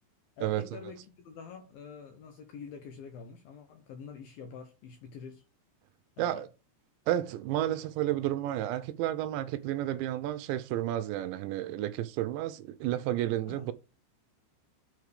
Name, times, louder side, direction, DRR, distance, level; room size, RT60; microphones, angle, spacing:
voice 1, 0.4-5.4 6.2-6.4 13.4-13.7, left 6 dB, 75° left, 2.2 m, -46 dB
voice 2, 7.1-13.7, right 13 dB, 80° right, 2.8 m, -31 dB
8.3 x 4.7 x 6.6 m
omnidirectional pair, 5.4 m